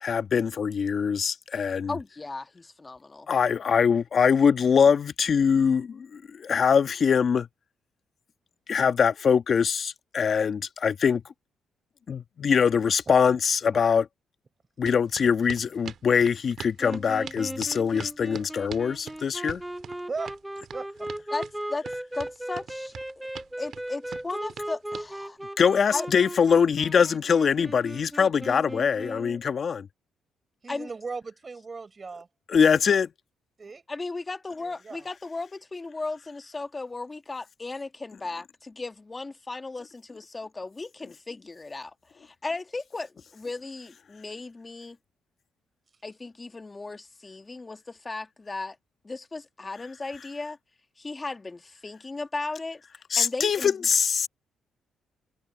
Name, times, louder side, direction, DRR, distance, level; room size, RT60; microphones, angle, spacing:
voice 1, 0.0-1.9 3.3-7.5 8.7-11.2 12.1-14.1 14.8-19.6 25.6-29.9 32.5-33.1 53.1-54.3, left 6 dB, 50° left, 1.4 m, -23 dB
voice 2, 1.9-3.3 21.3-21.9 22.1-23.3 23.6-25.4 25.9-26.1 30.7-30.9 33.9-45.0 46.0-48.8 49.0-50.6 51.0-52.8 53.2-53.9, left 3 dB, 25° left, 1.6 m, -36 dB
sound 1, 14.9-25.1, right 8 dB, 60° right, 1.9 m, -43 dB
sound 2, 16.8-29.4, right 1 dB, 5° right, 0.9 m, -37 dB
voice 3, 20.7-21.1 30.6-32.3 33.6-33.9 34.6-35.0, right 4 dB, 30° right, 7.0 m, -37 dB
cardioid pair, 90°, 0 cm